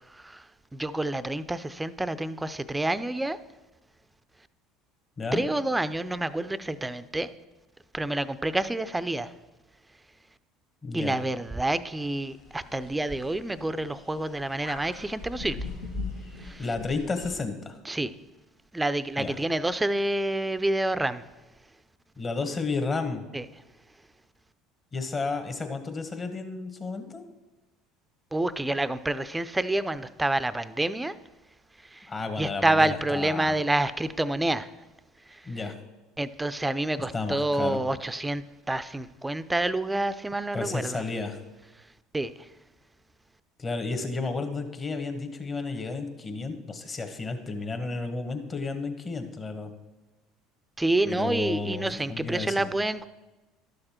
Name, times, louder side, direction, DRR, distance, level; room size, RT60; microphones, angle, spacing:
voice 1, 0.1-0.5 0.7-3.4 5.3-7.3 7.9-9.3 10.9-15.7 16.4-16.6 17.9-18.1 18.7-21.2 23.3-23.5 28.3-31.2 31.8-32.1 32.4-34.7 35.3-35.5 36.2-41.0 42.1-42.5 50.8-53.1, right 2 dB, 10° right, 14 dB, 0.5 m, -28 dB
voice 2, 10.8-11.2 16.6-17.8 19.2-19.4 22.2-23.2 24.9-27.2 32.1-33.6 35.4-35.7 37.1-37.8 40.5-41.4 43.6-49.7 51.1-52.6, left 3 dB, 30° left, 7 dB, 1.3 m, -32 dB
je aviary, 12.0-17.4, left 3 dB, 85° left, 1.5 m, -40 dB
11.5 x 6.6 x 4.4 m, 1.1 s
hypercardioid pair, 75°, 0 cm